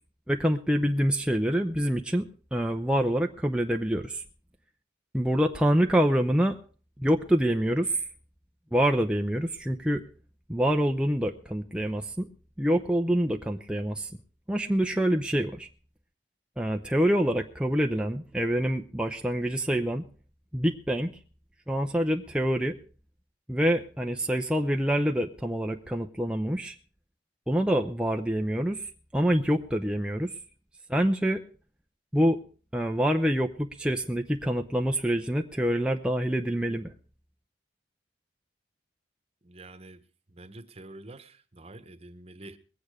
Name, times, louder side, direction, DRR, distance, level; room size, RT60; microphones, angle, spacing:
voice 1, 0.3-4.2 5.1-6.6 7.0-8.0 8.7-10.0 10.5-12.3 12.6-14.1 14.5-15.7 16.6-20.1 20.5-21.2 21.7-22.8 23.5-26.8 27.5-30.3 30.9-31.4 32.1-32.4 32.7-36.9, equal, 5° right, 3 dB, 0.6 m, -26 dB
voice 2, 39.4-42.6, right 2 dB, 35° right, 10 dB, 1.2 m, -47 dB
21.5 x 8.6 x 4.8 m, 0.37 s
head